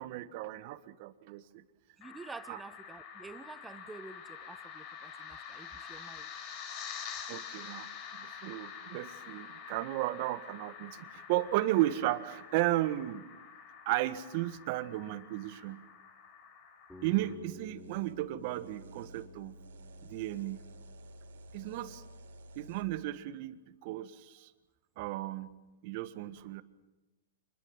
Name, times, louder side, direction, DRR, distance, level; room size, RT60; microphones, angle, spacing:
voice 1, 0.0-1.6 2.5-2.6 7.3-7.9 8.2-13.2 13.8-15.8 17.0-19.6 20.0-20.6 21.5-22.0 22.5-24.5 25.0-25.5 25.8-26.6, right 15 dB, 50° right, 12 dB, 1.6 m, -34 dB
sound 1, 2.0-17.3, left 7 dB, 45° left, 4.6 m, -47 dB
voice 2, 2.0-6.3, right 3 dB, 10° right, 13 dB, 1.0 m, -49 dB
Bass guitar, 16.9-20.9, right 1 dB, 5° left, 7.7 m, -53 dB
sound 2, 17.0-22.8, equal, 85° right, 4.2 m, -52 dB
26.5 x 21.5 x 7.4 m, 1.1 s
hypercardioid pair, 125°, 0 cm